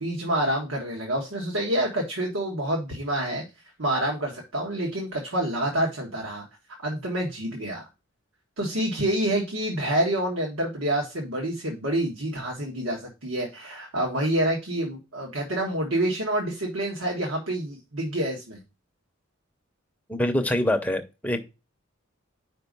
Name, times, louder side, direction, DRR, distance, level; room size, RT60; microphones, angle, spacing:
voice 1, 0.0-3.4 3.8-6.4 6.8-7.9 8.6-18.6, right 1 dB, 80° right, 1.5 m, -27 dB
voice 2, 20.1-21.4, left 1 dB, 5° left, 0.7 m, -25 dB
5.1 x 4.4 x 5.3 m
head